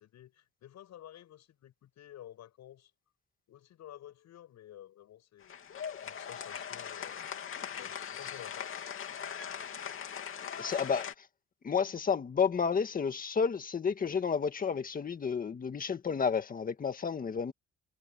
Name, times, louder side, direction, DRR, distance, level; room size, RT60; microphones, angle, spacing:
voice 1, 0.0-2.9 3.5-5.6 6.0-7.2 7.7-8.7, left 12 dB, 60° left, 7.9 m, -52 dB
sound 1, 5.4-11.1, left 8 dB, 40° left, 2.7 m, -40 dB
voice 2, 10.6-11.1 11.6-17.5, left 6 dB, 25° left, 1.8 m, -31 dB
cardioid pair, 170°, 31 cm